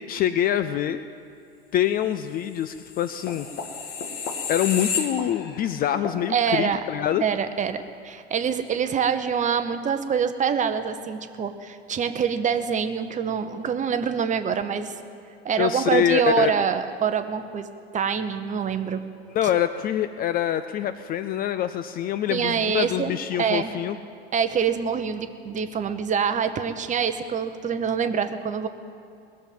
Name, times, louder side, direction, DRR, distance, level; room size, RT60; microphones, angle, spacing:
voice 1, 0.1-1.0 1.7-3.5 4.5-7.2 15.6-16.5 19.3-24.0, left 11 dB, 30° left, 11 dB, 0.4 m, -25 dB
sound 1, 2.7-5.7 6.0-6.2, left 5 dB, 45° left, 1.9 m, -31 dB
voice 2, 6.3-6.8 7.2-7.8 8.0-14.9 15.4-17.7 17.9-19.0 22.3-23.1 23.4-23.7 24.3-28.7, right 7 dB, 25° right, 9 dB, 0.9 m, -25 dB
20.0 x 7.4 x 9.3 m, 2.4 s
figure-of-eight pair, 85°, 32 cm